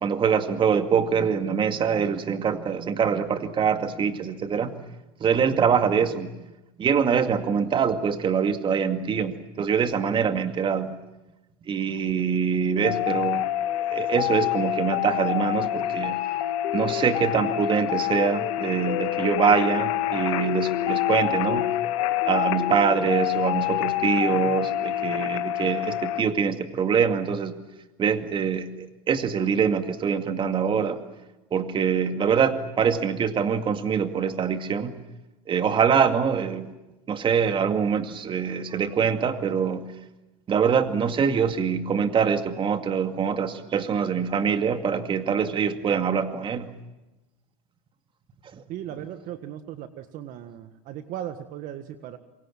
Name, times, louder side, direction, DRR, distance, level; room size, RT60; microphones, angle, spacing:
voice 1, 0.0-4.8 5.2-6.3 6.8-10.9 11.7-13.4 13.9-16.2 16.7-21.7 22.2-27.6 28.0-31.0 31.5-34.9 35.5-36.7 37.1-39.9 40.5-46.7 48.5-48.6, right 7 dB, 30° right, 7 dB, 2.2 m, -24 dB
sound 1, 12.8-26.2, left 14 dB, 75° left, 1.9 m, -26 dB
voice 2, 48.7-52.2, right 11 dB, 50° right, 9 dB, 1.7 m, -37 dB
27.0 x 24.5 x 7.5 m, 1.0 s
supercardioid pair, 115°, 17 cm